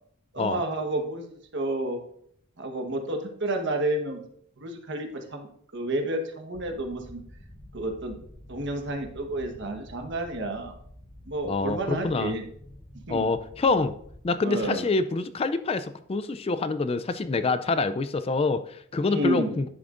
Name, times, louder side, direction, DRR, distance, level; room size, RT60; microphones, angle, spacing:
voice 1, 0.3-2.0 2.6-4.2 4.6-5.5 5.7-7.2 7.7-8.2 8.5-10.8 11.2-12.4 13.1-13.3 14.4-14.8 19.0-19.6, right 1 dB, 55° right, 4 dB, 1.3 m, -30 dB
sound 1, 6.5-14.2, left 1 dB, 85° left, 3.7 m, -48 dB
voice 2, 11.5-12.3 13.1-13.9 14.2-19.6, left 3 dB, 25° left, 12 dB, 0.3 m, -26 dB
10.5 x 7.8 x 2.5 m, 0.67 s
head